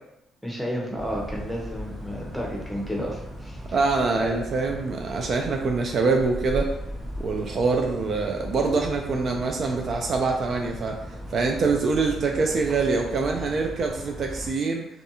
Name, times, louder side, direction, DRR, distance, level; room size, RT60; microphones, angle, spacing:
voice 1, 0.4-3.6 4.1-4.4, equal, ahead, -2 dB, 0.7 m, -31 dB
sound 1, 1.0-14.5, equal, 25° right, 1.0 m, -37 dB
voice 2, 3.7-6.8 7.2-11.0 11.3-14.9, right 4 dB, 55° right, 2 dB, 0.3 m, -25 dB
2.5 x 2.3 x 2.7 m, 0.84 s
cardioid pair, 85°, 0 cm